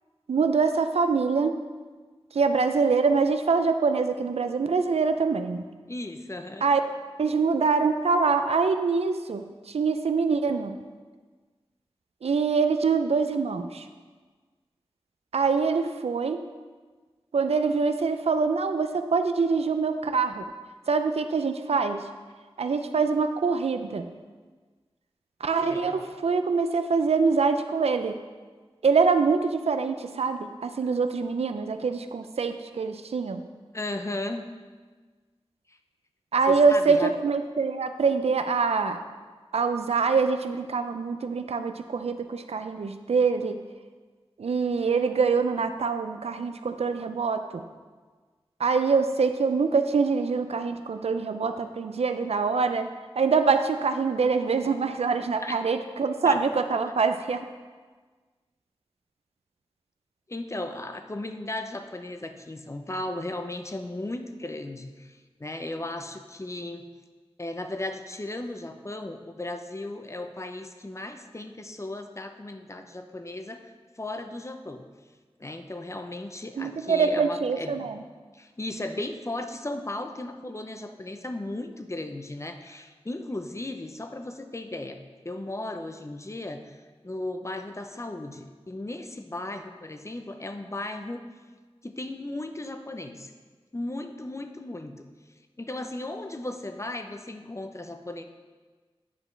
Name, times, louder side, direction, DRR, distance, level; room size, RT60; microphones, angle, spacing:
voice 1, 0.3-1.6 2.3-5.7 6.6-6.8 7.2-10.8 12.2-13.9 15.3-16.4 17.3-20.4 20.9-22.0 22.6-24.1 25.4-28.1 28.8-33.4 36.3-39.0 39.5-43.6 44.4-47.6 48.6-52.9 53.2-57.5 76.6-78.0, right 5 dB, 85° right, 8 dB, 0.4 m, -24 dB
voice 2, 5.9-6.7 25.6-26.1 33.7-34.5 35.7-35.8 36.5-37.1 55.4-55.6 56.2-56.4 60.3-66.9 67.4-73.7 74.0-74.8 75.4-77.9 78.3-86.8 87.0-91.2 91.8-93.3 93.7-95.0 95.6-98.2, left 2 dB, 30° left, 7 dB, 0.5 m, -36 dB
9.5 x 5.0 x 3.2 m, 1.4 s
wide cardioid pair, 50°, 10 cm